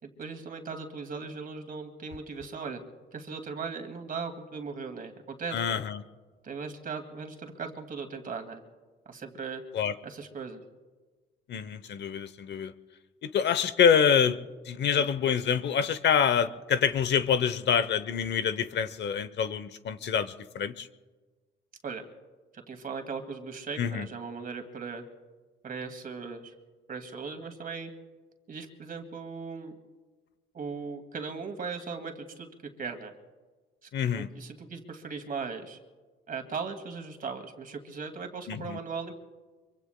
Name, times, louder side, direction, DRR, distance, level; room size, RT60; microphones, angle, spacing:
voice 1, 0.0-2.8 3.1-5.8 6.4-8.6 9.1-9.6 10.0-10.6 14.9-15.1 21.8-22.0 22.7-25.0 25.6-26.5 26.9-27.9 28.5-29.8 30.5-33.1 33.8-33.9 34.1-35.8 36.3-39.1, right 5 dB, 45° right, 5 dB, 2.2 m, -38 dB
voice 2, 5.5-6.0 9.7-9.9 11.5-12.7 13.2-14.4 14.7-20.9 23.8-24.1 33.9-34.3 38.5-38.8, left 7 dB, 60° left, 13 dB, 0.8 m, -26 dB
25.0 x 24.0 x 2.2 m, 1.3 s
cardioid pair, 90°, 20 cm